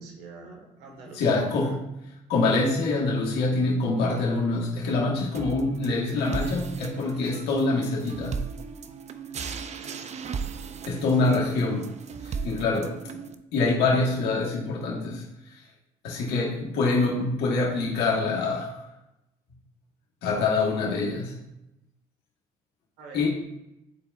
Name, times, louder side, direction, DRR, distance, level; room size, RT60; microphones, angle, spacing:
voice 1, 0.0-1.8 9.8-10.0 11.2-11.3 23.0-23.2, right 4 dB, 80° right, 2 dB, 1.7 m, -45 dB
voice 2, 1.1-1.9 2.3-8.4 10.9-11.9 12.2-13.2 13.5-15.6 16.0-18.9 20.2-21.4 23.1-23.3, left 3 dB, 75° left, -2 dB, 1.6 m, -25 dB
sound 1, 5.3-13.3, right 6 dB, 40° right, 0.6 m, -36 dB
11.5 x 4.4 x 2.6 m, 0.89 s
supercardioid pair, 65°, 17 cm